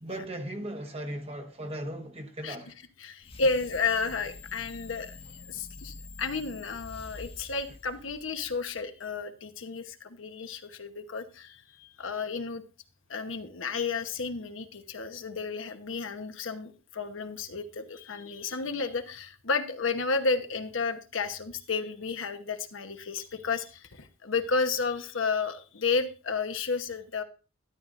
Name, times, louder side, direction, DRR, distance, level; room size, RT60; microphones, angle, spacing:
voice 1, 0.0-2.7, right 1 dB, 30° right, 1.2 m, -37 dB
voice 2, 2.4-2.7 3.0-12.6 13.1-27.2, left 4 dB, 75° left, 1.0 m, -32 dB
sound 1, 3.2-8.7, left 3 dB, 30° left, 1.1 m, -46 dB
13.0 x 11.0 x 2.5 m
head